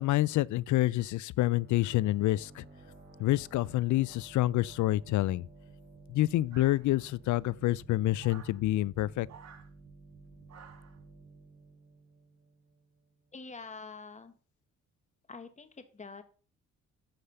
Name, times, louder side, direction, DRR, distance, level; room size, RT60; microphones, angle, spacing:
voice 1, 0.0-2.6 3.2-5.5 6.1-9.3, left 16 dB, 75° left, 0.5 m, -28 dB
sound 1, 1.6-13.0, right 3 dB, 35° right, 5.0 m, -54 dB
sound 2, 6.5-7.2 8.2-8.6 9.3-9.7 10.5-11.0, right 7 dB, 60° right, 2.0 m, -53 dB
voice 2, 13.3-14.3 15.3-16.2, left 4 dB, 25° left, 1.5 m, -46 dB
10.0 x 5.0 x 6.9 m
cardioid pair, 90°, 30 cm